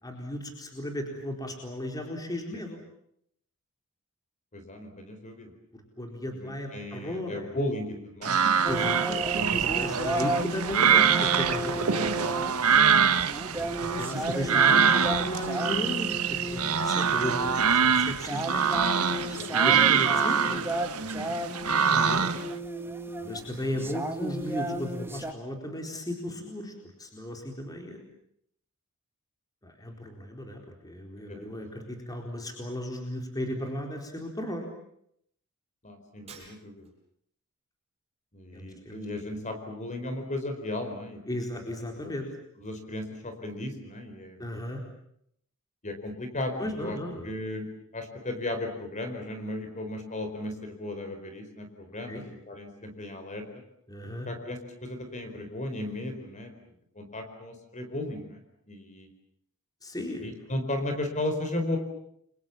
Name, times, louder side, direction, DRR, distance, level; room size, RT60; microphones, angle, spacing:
voice 1, 0.0-2.8 5.7-7.5 8.7-12.4 13.6-20.6 23.2-28.0 29.6-34.7 38.5-38.9 41.3-42.3 44.4-44.8 46.6-47.3 52.1-52.2 53.9-54.3 59.8-60.3, left 1 dB, 15° left, 3 dB, 4.3 m, -36 dB
voice 2, 4.5-5.5 6.3-8.6 13.0-13.2 19.4-19.5 21.0-21.3 21.9-22.3 23.2-23.9 26.3-26.4 31.3-31.5 35.8-36.9 38.3-41.4 42.0-42.2 42.6-44.5 45.8-47.0 47.2-47.7 47.9-53.4 54.3-58.4 58.7-59.1 60.2-61.8, left 1 dB, 35° left, 6 dB, 4.6 m, -36 dB
sound 1, 8.2-22.5, right 7 dB, 80° right, 1.5 m, -24 dB
sound 2, 8.6-25.3, right 1 dB, 10° right, 1.9 m, -34 dB
Shatter, 36.3-37.1, right 5 dB, 30° right, 7.0 m, -50 dB
30.0 x 24.5 x 7.4 m, 0.71 s
head